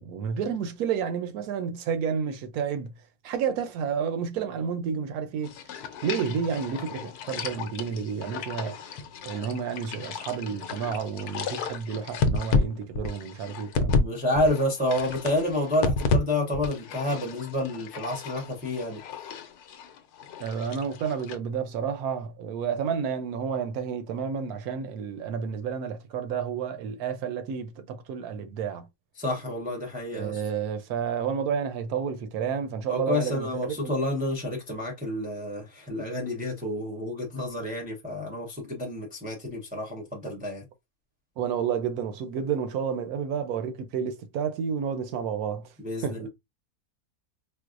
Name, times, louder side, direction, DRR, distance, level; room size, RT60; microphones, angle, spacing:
voice 1, 0.0-2.9 3.2-5.7 6.0-9.0 9.2-14.0 20.4-28.9 30.1-33.9 40.3-40.4 41.4-45.7 46.0-46.3, right 7 dB, 75° right, 1.0 m, -30 dB
sound 1, 5.4-14.1 14.4-16.2 16.5-21.4, left 4 dB, 75° left, 1.1 m, -32 dB
voice 2, 14.0-19.0 29.2-30.4 32.9-40.6 45.8-46.3, left 1 dB, 10° right, 0.5 m, -29 dB
4.5 x 2.0 x 2.4 m
omnidirectional pair, 1.7 m